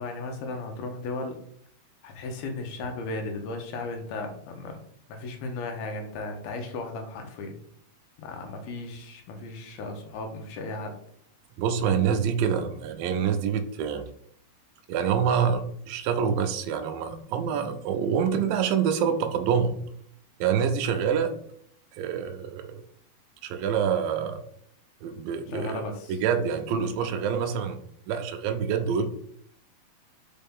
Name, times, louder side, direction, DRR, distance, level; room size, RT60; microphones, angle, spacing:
voice 1, 0.0-1.4 2.0-4.8 5.1-7.6 8.2-10.9 25.5-26.2, left 2 dB, 85° left, 4 dB, 2.8 m, -35 dB
voice 2, 11.6-14.0 14.9-19.7 20.4-21.3 22.0-22.8 23.4-24.4 25.0-25.8 26.1-27.8 28.1-29.1, right 7 dB, 80° right, 6 dB, 2.4 m, -26 dB
5.6 x 5.0 x 3.6 m, 0.66 s
omnidirectional pair, 4.1 m